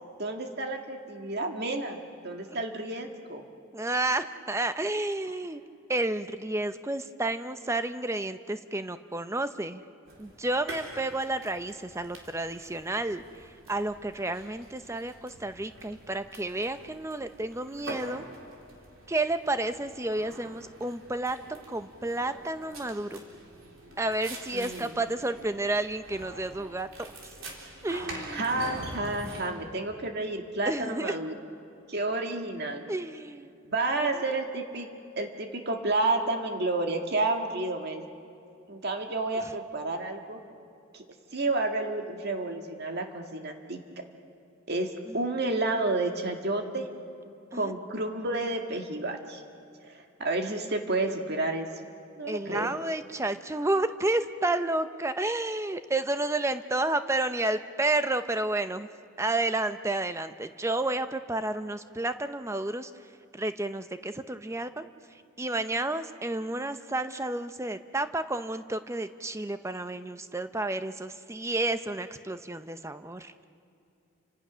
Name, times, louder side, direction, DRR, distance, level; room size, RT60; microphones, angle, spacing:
voice 1, 0.2-2.0 2.2-3.5 24.5-24.9 28.3-31.3 31.9-32.9 33.7-34.9 35.2-38.1 38.7-40.4 40.9-41.0 41.3-43.8 44.7-46.9 47.5-49.4 49.8-49.9 50.2-51.7 52.2-52.8, right 2 dB, 50° right, 4 dB, 1.8 m, -30 dB
voice 2, 3.7-5.6 5.9-9.8 10.2-18.2 19.1-21.4 21.7-23.2 24.0-27.1 27.8-28.5 30.7-31.2 32.9-33.5 34.0-34.2 39.3-39.5 45.1-45.2 47.5-47.7 52.3-58.9 59.2-62.9 63.3-64.9 65.4-73.3, right 2 dB, 15° right, 10 dB, 0.7 m, -31 dB
sound 1, 10.1-29.5, right 1 dB, 70° right, 4.0 m, -45 dB
30.0 x 26.0 x 6.3 m, 2.6 s
head